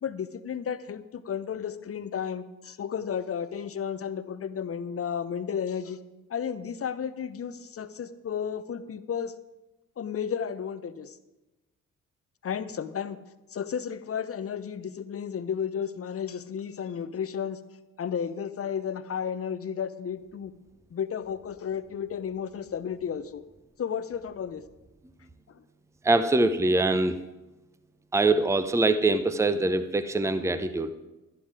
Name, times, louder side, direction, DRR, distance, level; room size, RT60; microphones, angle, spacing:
voice 1, 0.0-6.0 6.3-9.3 10.0-11.2 12.4-13.2 13.5-17.6 18.0-20.5 20.9-23.4 23.8-24.6 25.5-25.6, left 7 dB, 35° left, 14 dB, 0.8 m, -33 dB
voice 2, 26.0-27.2 28.1-30.9, right 2 dB, 5° right, 12 dB, 0.8 m, -23 dB
11.5 x 11.0 x 4.8 m, 1.1 s
figure-of-eight pair, 40°, 42 cm